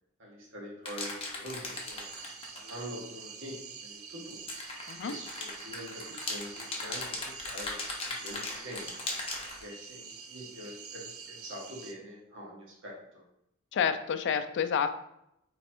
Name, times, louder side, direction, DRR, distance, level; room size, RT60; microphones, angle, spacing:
voice 1, 0.2-2.1 2.5-4.4 5.0-9.2 9.6-13.2, equal, 60° right, -3 dB, 1.4 m, -45 dB
sound 1, 0.9-2.9 4.3-9.6, left 3 dB, 25° left, 0.8 m, -38 dB
sound 2, 1.7-11.9, right 6 dB, 80° right, 0.5 m, -46 dB
voice 2, 13.7-14.9, left 7 dB, 55° left, 9 dB, 0.4 m, -29 dB
3.3 x 3.1 x 4.3 m, 0.80 s
head